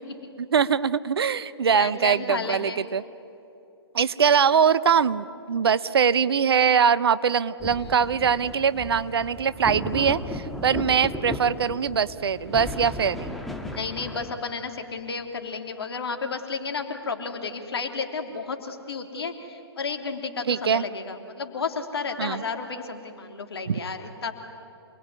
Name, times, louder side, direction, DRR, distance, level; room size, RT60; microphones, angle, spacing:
voice 1, 0.5-3.0 3.9-13.3 20.5-20.8 22.2-22.4 23.7-23.8, right 7 dB, 65° right, 16 dB, 0.9 m, -22 dB
voice 2, 1.7-2.8 7.8-8.0 13.7-24.3, left 5 dB, 65° left, 5 dB, 3.3 m, -32 dB
sound 1, 7.6-14.3, left 1 dB, ahead, 1.9 m, -35 dB
27.5 x 21.0 x 9.7 m, 2.8 s
figure-of-eight pair, 125°, 14 cm